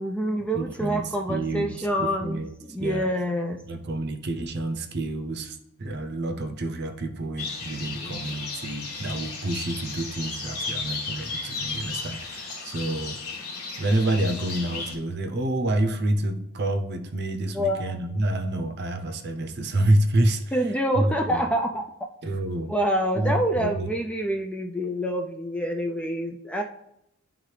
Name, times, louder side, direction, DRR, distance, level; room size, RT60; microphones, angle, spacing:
voice 1, 0.0-2.4 2.7-3.6 8.0-8.3 17.5-18.0 20.5-21.9 22.7-26.6, equal, 5° left, 3 dB, 0.3 m, -27 dB
voice 2, 0.5-2.5 2.8-3.1 3.6-13.2 13.8-20.4 21.0-21.5 22.2-22.7 23.1-23.9, right 1 dB, 50° right, 7 dB, 0.6 m, -28 dB
sound 1, 7.4-14.9, left 4 dB, 85° left, 1.6 m, -34 dB
10.5 x 3.7 x 3.2 m, 0.82 s
head